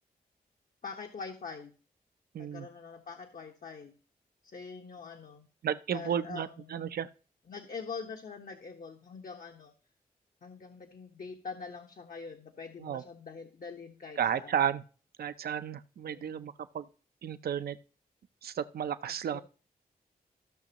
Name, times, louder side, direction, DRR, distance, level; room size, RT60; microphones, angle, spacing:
voice 1, 0.8-1.7 2.4-3.9 4.4-5.5 5.9-6.8 7.5-9.7 10.4-14.5 16.1-16.4 19.3-19.4, left 5 dB, 65° left, 3 dB, 1.3 m, -44 dB
voice 2, 2.3-2.7 5.6-7.1 12.8-13.0 14.2-14.8 15.2-16.8 17.2-17.7 18.4-19.4, right 9 dB, 80° right, 13 dB, 0.6 m, -33 dB
15.5 x 6.1 x 3.0 m, 0.38 s
cardioid pair, 50°, 16 cm